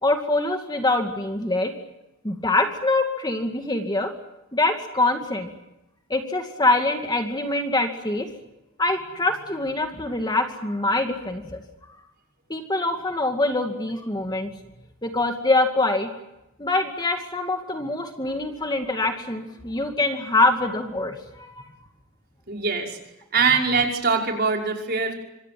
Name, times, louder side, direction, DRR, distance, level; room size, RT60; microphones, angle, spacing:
voice 1, 0.0-1.7 2.2-4.1 4.5-5.5 6.1-8.3 8.8-11.6 12.5-14.5 15.0-16.1 16.6-21.6, left 2 dB, 20° left, 4 dB, 2.3 m, -24 dB
voice 2, 22.5-23.0 23.3-25.1, right 4 dB, 50° right, 1 dB, 5.5 m, -22 dB
26.5 x 25.5 x 7.7 m, 0.93 s
head